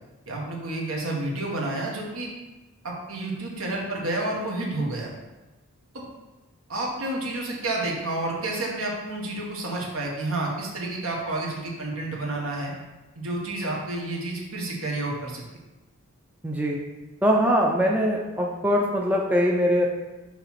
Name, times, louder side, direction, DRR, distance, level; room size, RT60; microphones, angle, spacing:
voice 1, 0.3-2.3 2.8-5.1 5.9-6.0 6.7-12.7 13.1-15.4, right 2 dB, 70° right, -2 dB, 1.5 m, -30 dB
voice 2, 16.4-16.8 17.2-19.9, equal, 5° right, -1 dB, 0.5 m, -22 dB
6.7 x 3.0 x 5.8 m, 1.1 s
head